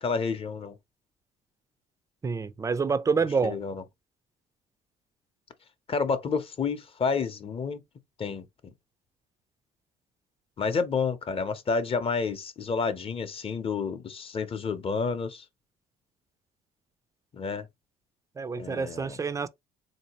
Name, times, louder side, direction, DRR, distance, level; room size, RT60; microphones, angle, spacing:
voice 1, 0.0-0.7 3.4-3.8 5.9-7.8 8.2-8.7 10.6-15.4 17.3-17.7 18.6-19.2, left 5 dB, 35° left, 0.7 m, -30 dB
voice 2, 2.2-3.6 18.4-19.5, right 5 dB, 20° right, 0.4 m, -27 dB
3.7 x 2.8 x 2.9 m
cardioid pair, 110°, 17 cm